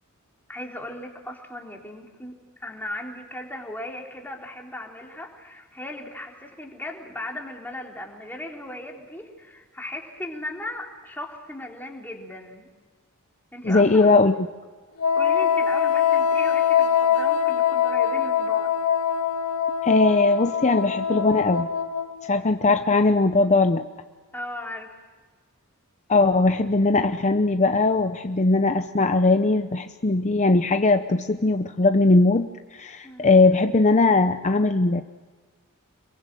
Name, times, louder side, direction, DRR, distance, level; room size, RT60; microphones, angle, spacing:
voice 1, 0.5-12.7 13.5-14.2 15.2-18.7 24.3-25.0 33.0-33.4, left 1 dB, 10° left, 0 dB, 3.7 m, -37 dB
voice 2, 13.6-14.3 19.8-21.7 22.2-23.8 26.1-35.0, left 3 dB, 30° left, 7 dB, 0.8 m, -20 dB
Wind instrument woodwind instrument, 15.0-22.3, left 8 dB, 75° left, 2.2 m, -23 dB
27.0 x 22.5 x 7.6 m, 1.4 s
head